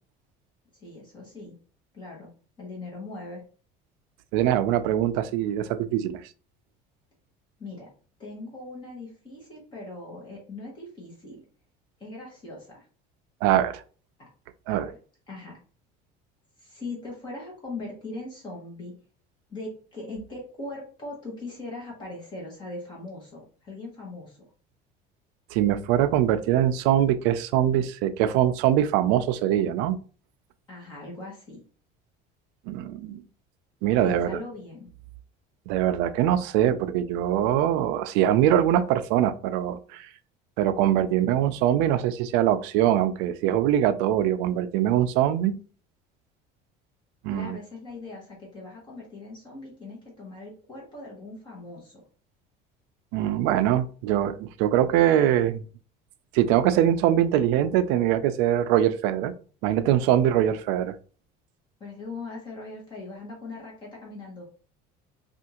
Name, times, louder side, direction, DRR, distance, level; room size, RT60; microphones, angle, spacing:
voice 1, 0.8-1.5 1.9-2.3 2.6-3.4 7.6-7.9 8.2-11.4 12.0-12.9 14.2-14.3 14.7-15.0 15.3-15.5 16.6-18.9 19.5-24.4 30.7-31.6 34.0-34.9 47.3-52.0 61.8-64.5, left 2 dB, 25° left, -3 dB, 1.1 m, -40 dB
voice 2, 4.3-6.2 13.4-13.8 14.7-14.9 25.5-30.0 32.7-33.2 33.8-34.4 35.7-40.1 40.6-45.6 47.2-47.6 53.1-55.6 56.3-59.3 59.6-61.0, right 11 dB, 75° right, 12 dB, 0.4 m, -23 dB
3.5 x 2.4 x 2.8 m, 0.39 s
cardioid pair, 175°, 19 cm